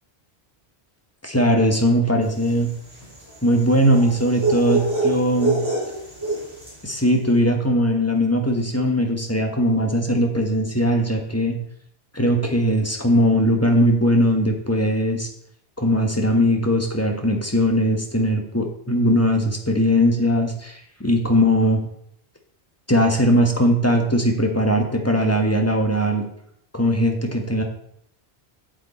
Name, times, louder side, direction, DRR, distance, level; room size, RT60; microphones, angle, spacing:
voice 1, 1.2-2.7 3.4-5.6 6.8-11.6 12.1-15.3 15.8-21.8 22.9-26.2 26.7-27.6, equal, 15° left, 3 dB, 1.3 m, -20 dB
sound 1, 2.3-6.9, right 2 dB, 20° right, 3.0 m, -26 dB
8.2 x 7.7 x 4.3 m, 0.70 s
omnidirectional pair, 1.1 m